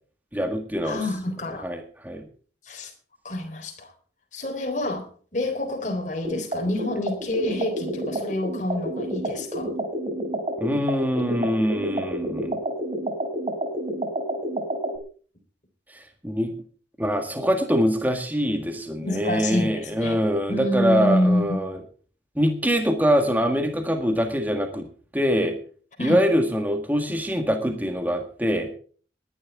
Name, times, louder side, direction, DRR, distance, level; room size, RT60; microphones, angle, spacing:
voice 1, 0.3-1.0 1.6-2.2 10.6-12.6 15.9-16.5 17.0-21.8 22.3-24.9 25.1-25.6 26.0-28.7, equal, 10° right, 1.7 m, -24 dB
voice 2, 0.8-1.7 2.7-2.9 3.2-3.9 4.3-5.1 5.3-9.7 19.0-20.2 20.5-21.6 26.0-26.2, left 1 dB, 40° left, 3.9 m, -27 dB
sound 1, 6.2-15.0, right 1 dB, 35° right, 3.3 m, -29 dB
20.0 x 11.0 x 3.6 m
head